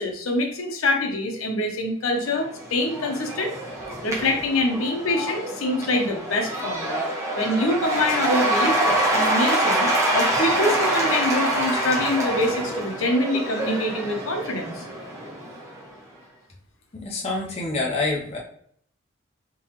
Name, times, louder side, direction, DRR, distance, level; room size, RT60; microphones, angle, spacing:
voice 1, 0.0-3.5 4.0-7.0 7.3-14.8, left 1 dB, 85° left, 3 dB, 0.8 m, -25 dB
Cheering / Applause / Crowd, 2.4-15.8, right 1 dB, 15° right, 0.7 m, -25 dB
voice 2, 17.0-18.4, left 3 dB, 30° left, -2 dB, 0.6 m, -26 dB
3.7 x 2.9 x 2.9 m, 0.65 s
head